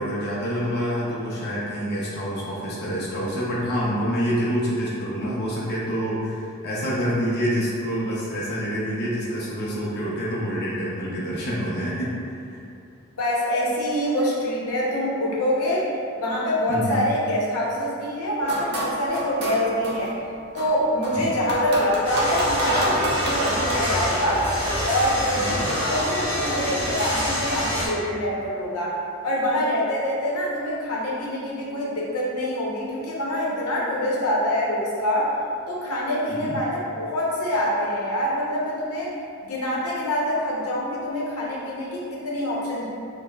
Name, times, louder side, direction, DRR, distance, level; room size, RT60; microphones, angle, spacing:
voice 1, 0.0-12.6 16.7-17.0 21.1-21.4 25.3-25.7 36.3-36.5, equal, 45° left, -7 dB, 0.5 m, -27 dB
voice 2, 13.2-15.9 16.2-20.1 20.5-24.5 24.8-29.0 29.2-35.3 35.7-39.1 39.4-42.9, left 1 dB, 90° left, -5 dB, 0.7 m, -25 dB
sound 1, 18.4-20.1 20.6-23.7, right 1 dB, 45° right, 0.6 m, -28 dB
sound 2, 22.0-27.9, equal, 10° left, 1.1 m, -26 dB
5.2 x 2.0 x 2.2 m, 2.5 s
head